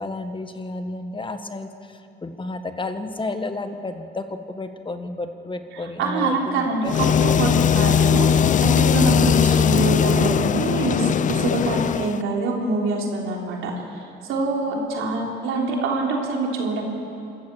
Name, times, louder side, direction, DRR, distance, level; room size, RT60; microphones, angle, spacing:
voice 1, 0.0-7.3 14.8-15.2, left 2 dB, 25° left, 8 dB, 1.5 m, -32 dB
voice 2, 6.0-6.9 7.2-14.0 14.3-16.8, right 3 dB, 90° right, -1 dB, 3.7 m, -25 dB
sound 1, 6.9-12.2, left 7 dB, 40° left, 0.4 m, -19 dB
27.0 x 14.5 x 7.1 m, 2.8 s
cardioid pair, 90°, 20 cm